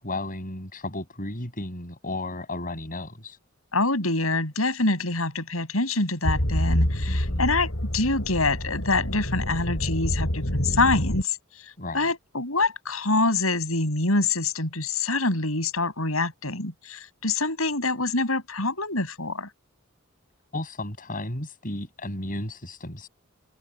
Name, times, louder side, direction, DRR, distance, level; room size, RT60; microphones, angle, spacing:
voice 1, 0.0-3.4 7.0-7.5 11.8-12.1 20.5-23.1, left 2 dB, 40° left, 7.9 m, -34 dB
voice 2, 3.7-19.5, left 3 dB, 90° left, 7.4 m, -25 dB
sound 1, 6.2-11.2, equal, 70° left, 4.8 m, -27 dB
head